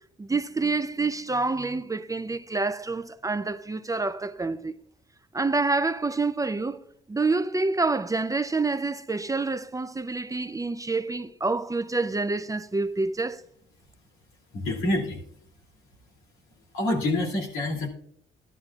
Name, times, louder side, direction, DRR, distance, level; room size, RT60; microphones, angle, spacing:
voice 1, 0.2-4.7 5.3-6.8 7.1-13.4, right 3 dB, 15° right, 0.5 m, -27 dB
voice 2, 14.5-15.2 16.7-17.9, left 1 dB, 90° left, 2.6 m, -26 dB
14.0 x 11.0 x 2.4 m
cardioid pair, 90°, 20 cm